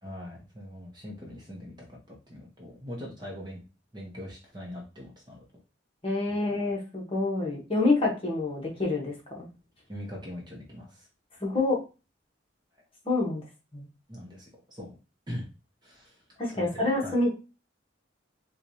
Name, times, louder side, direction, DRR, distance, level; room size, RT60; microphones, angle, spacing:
voice 1, 0.0-3.6 3.9-5.4 6.3-6.4 9.9-11.1 14.1-14.9 15.3-15.5 15.8-16.2 16.6-17.1, equal, 20° right, -2 dB, 0.9 m, -41 dB
voice 2, 6.0-9.5 11.4-11.8 13.0-13.4 13.7-13.9 16.4-17.3, left 2 dB, 30° left, -2 dB, 1.1 m, -27 dB
4.5 x 2.4 x 2.7 m, 0.30 s
head